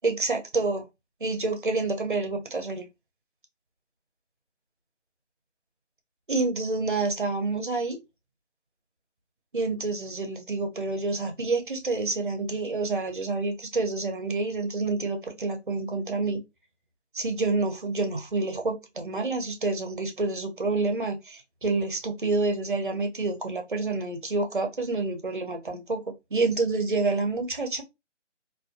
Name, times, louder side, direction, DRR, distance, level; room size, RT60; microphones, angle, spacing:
voice 1, 0.0-0.8 1.2-2.9 6.3-8.0 9.5-16.4 17.1-26.0 26.3-27.8, right 3 dB, 45° right, 0.5 m, -28 dB
2.4 x 2.2 x 2.4 m
figure-of-eight pair, 165°, 37 cm